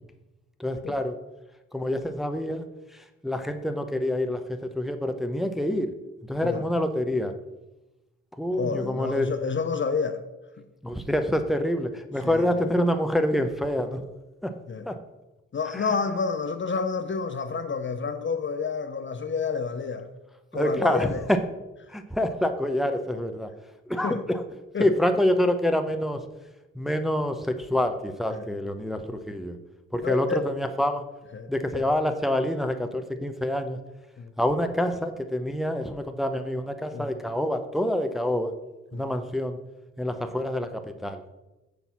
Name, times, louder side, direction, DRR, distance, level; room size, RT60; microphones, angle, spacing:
voice 1, 0.6-1.2 1.7-2.7 2.9-5.9 6.3-7.3 8.4-9.3 10.8-14.0 14.4-14.6 14.9-15.0 15.7-15.9 20.5-21.4 21.9-23.5 23.9-24.4 24.8-26.2 26.7-29.5 29.9-31.0 31.5-33.8 34.4-38.5 38.9-39.6 40.0-41.2, left 1 dB, ahead, 0.7 m, -26 dB
voice 2, 8.6-10.2 12.2-12.5 14.7-14.9 15.5-20.1 20.5-21.2 24.0-24.2 24.7-24.9 28.3-28.5 30.0-30.5 31.3-31.5 31.7-31.8 34.2-34.3 36.9-37.1 38.9-39.0, left 5 dB, 35° left, 0.6 m, -29 dB
6.9 x 4.0 x 5.9 m
supercardioid pair, 60°, 33 cm